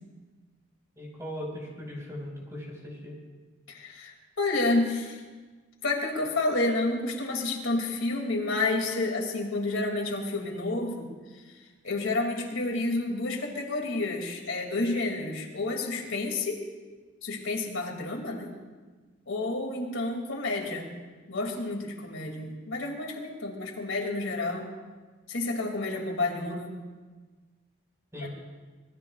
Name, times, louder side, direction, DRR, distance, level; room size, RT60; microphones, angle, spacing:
voice 1, 1.0-3.1 28.1-28.3, left 1 dB, 15° right, -3 dB, 5.3 m, -38 dB
voice 2, 3.7-5.2 5.8-16.6 17.2-18.5 19.3-24.7 25.3-26.8 28.2-28.3, left 2 dB, 80° left, 1 dB, 2.6 m, -30 dB
26.0 x 20.5 x 2.4 m, 1.4 s
head